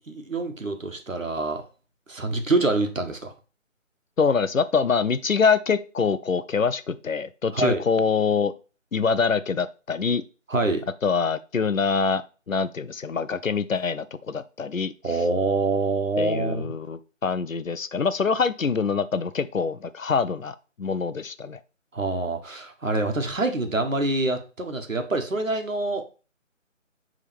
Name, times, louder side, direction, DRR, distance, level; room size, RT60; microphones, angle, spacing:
voice 1, 0.1-1.6 2.1-3.3 7.5-7.8 10.5-10.8 15.0-16.7 21.9-26.0, right 2 dB, 75° right, 6 dB, 1.4 m, -25 dB
voice 2, 4.2-8.5 8.9-10.2 11.0-14.9 16.2-21.6, left 5 dB, 80° left, 14 dB, 0.7 m, -25 dB
8.6 x 3.6 x 3.5 m, 0.34 s
figure-of-eight pair, 155°, 39 cm